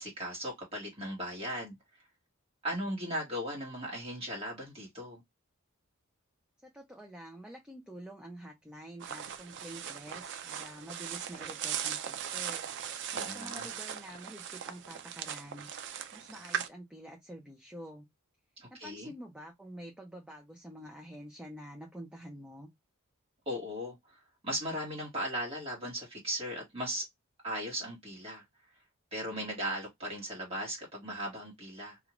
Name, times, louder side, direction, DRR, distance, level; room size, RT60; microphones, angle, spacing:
voice 1, 0.0-1.8 2.6-5.2 13.1-13.7 18.6-19.1 23.5-27.0 27.4-28.4 29.1-32.0, equal, 25° right, 1.2 m, -37 dB
voice 2, 6.6-12.7 13.3-15.7 16.1-18.1 18.7-22.7, equal, 5° right, 0.5 m, -47 dB
sound 1, 9.0-16.7, right 9 dB, 55° right, 0.4 m, -39 dB
2.5 x 2.3 x 2.9 m
head